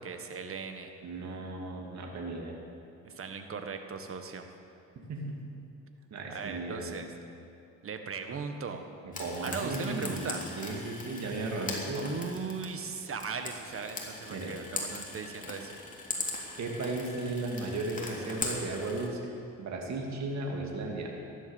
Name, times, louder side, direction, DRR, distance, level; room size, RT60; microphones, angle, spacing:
voice 1, 0.0-0.9 3.0-4.5 6.3-7.1 7.8-8.8 9.4-10.5 11.9-15.7, right 5 dB, 45° right, 6 dB, 1.6 m, -38 dB
voice 2, 1.0-2.6 5.0-5.4 6.1-7.0 9.0-12.2 14.3-14.5 16.6-19.2 19.6-21.1, right 2 dB, 65° right, 0 dB, 2.6 m, -35 dB
Frying (food), 9.1-19.1, left 2 dB, 25° left, 3.2 m, -40 dB
15.0 x 11.0 x 7.3 m, 2.8 s
cardioid pair, 90°, 30 cm